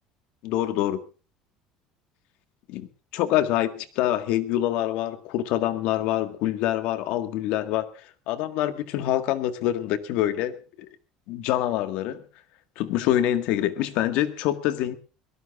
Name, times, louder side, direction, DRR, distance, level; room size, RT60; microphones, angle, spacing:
voice 1, 0.4-1.0 2.7-7.9 8.3-10.9 11.3-12.2 12.8-15.0, left 13 dB, 55° left, 10 dB, 1.8 m, -25 dB
22.5 x 19.0 x 2.5 m, 0.34 s
cardioid pair, 175°, 2 cm